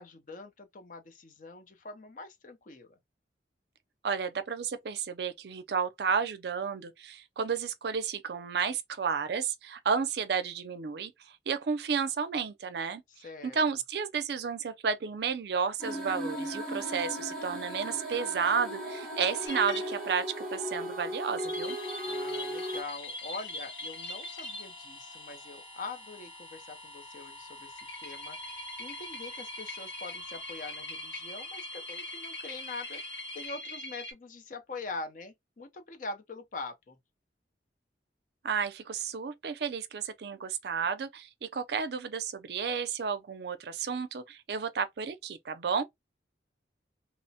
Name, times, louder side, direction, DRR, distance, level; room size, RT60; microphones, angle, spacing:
voice 1, 0.0-3.0 13.2-13.6 22.1-37.0, left 3 dB, 45° left, 0.5 m, -44 dB
voice 2, 4.0-11.1 11.5-13.0 13.5-20.2 20.5-21.8 38.4-45.8, right 6 dB, 60° right, 0.4 m, -32 dB
sound 1, 15.8-22.8, equal, 5° left, 0.8 m, -36 dB
sound 2, 19.4-20.3 21.4-24.8 27.8-34.1, left 1 dB, 80° left, 1.4 m, -42 dB
sound 3, 21.6-33.5, left 2 dB, 25° left, 1.0 m, -48 dB
2.9 x 2.1 x 2.7 m
head